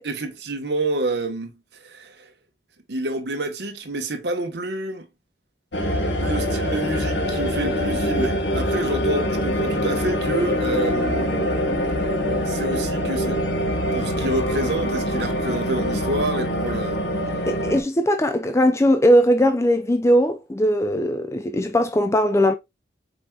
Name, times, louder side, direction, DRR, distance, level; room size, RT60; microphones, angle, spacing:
voice 1, 0.0-1.5 1.8-2.3 2.9-5.1 6.2-13.4 13.9-17.0, right 2 dB, 70° right, 1.2 m, -28 dB
sound 1, 5.7-17.8, equal, 80° left, 1.2 m, -24 dB
voice 2, 17.5-22.5, equal, 15° left, 0.4 m, -19 dB
5.2 x 4.5 x 2.3 m
head